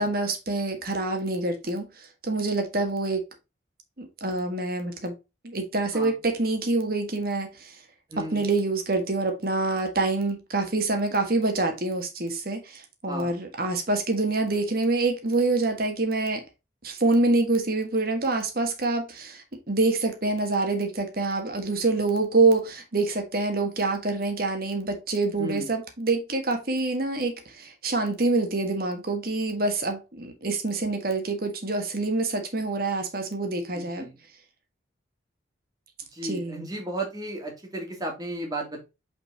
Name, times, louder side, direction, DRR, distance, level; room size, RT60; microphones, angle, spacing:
voice 1, 0.0-3.2 4.0-5.1 5.4-7.8 8.2-16.4 16.8-34.1 36.2-36.6, right 3 dB, 50° right, 1.6 m, -26 dB
voice 2, 8.1-8.4 13.1-13.4 25.4-25.7 33.7-34.2 36.1-38.8, right 1 dB, 20° right, 2.2 m, -34 dB
5.6 x 4.3 x 4.2 m
head